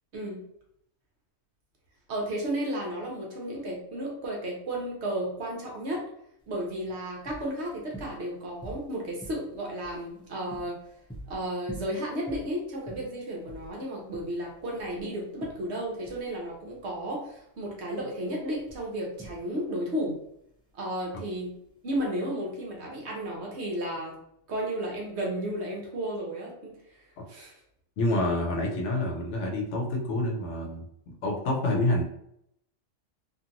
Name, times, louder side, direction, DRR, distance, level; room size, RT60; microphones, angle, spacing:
voice 1, 2.1-6.1 6.5-10.8 11.3-20.2 20.7-21.5 21.8-24.2 24.5-26.8 27.3-27.5, right 1 dB, 60° right, -1 dB, 1.0 m, -33 dB
sound 1, 6.4-22.1, right 1 dB, 10° left, 0.3 m, -48 dB
voice 2, 28.0-32.0, left 1 dB, 65° left, 0 dB, 0.9 m, -28 dB
2.8 x 2.5 x 2.5 m, 0.74 s
omnidirectional pair, 1.4 m